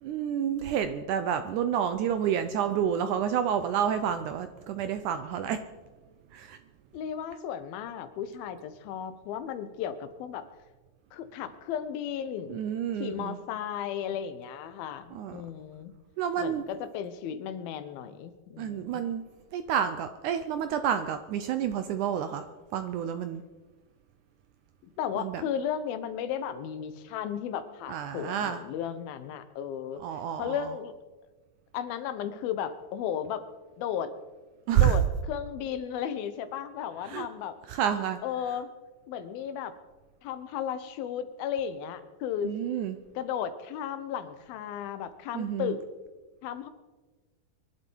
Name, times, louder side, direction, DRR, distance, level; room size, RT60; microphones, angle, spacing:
voice 1, 0.0-5.6 6.3-6.6 12.5-13.4 15.2-15.4 16.2-16.6 18.6-19.2 19.5-22.5 22.7-23.4 25.2-25.4 27.9-28.6 30.0-30.6 34.7-34.9 37.0-37.3 37.7-38.2 42.4-43.0 45.3-45.8, right 9 dB, 80° right, 10 dB, 1.8 m, -29 dB
voice 2, 6.9-10.5 11.1-12.6 13.0-15.9 16.4-19.0 24.8-30.0 30.4-30.9 31.7-33.4 33.8-34.1 34.7-37.6 38.2-38.7 39.1-39.7 40.2-42.5 43.2-45.8 46.4-46.7, left 9 dB, 85° left, 12 dB, 2.8 m, -34 dB
24.0 x 11.5 x 4.6 m, 1.3 s
omnidirectional pair, 4.2 m